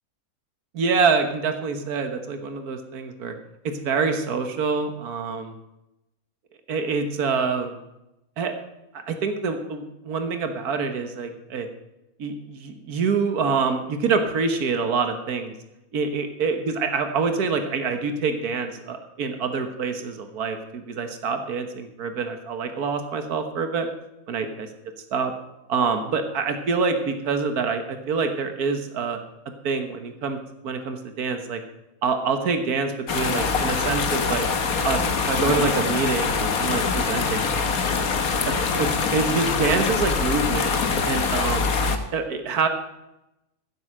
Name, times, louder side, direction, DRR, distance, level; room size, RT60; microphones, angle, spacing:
voice 1, 0.7-3.3 3.6-5.5 6.7-7.8 8.4-8.6 8.9-11.7 12.2-15.5 15.9-23.9 24.3-24.7 25.1-25.3 25.7-29.2 29.6-30.4 30.6-31.6 32.0-34.5 34.8-35.0 35.3-38.1 38.5-40.7 41.1-41.7 42.1-42.7, right 5 dB, 80° right, 7 dB, 1.8 m, -26 dB
sound 1, 33.1-42.0, left 5 dB, 70° left, 1.6 m, -24 dB
15.5 x 7.9 x 6.5 m, 0.92 s
omnidirectional pair, 1.6 m